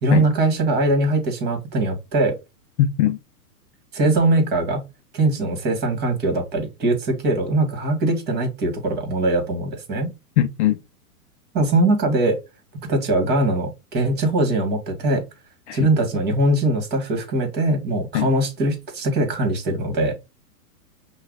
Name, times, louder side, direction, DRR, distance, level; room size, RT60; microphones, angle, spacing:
voice 1, 0.0-2.4 3.9-4.8 5.1-10.1 11.5-12.4 12.9-15.2 15.7-20.1, right 2 dB, 20° right, 1.7 m, -21 dB
voice 2, 2.8-3.2 10.4-10.8 15.7-15.9 18.1-18.3, left 11 dB, 50° left, 0.6 m, -20 dB
5.5 x 2.3 x 3.9 m
hypercardioid pair, 150°, 45 cm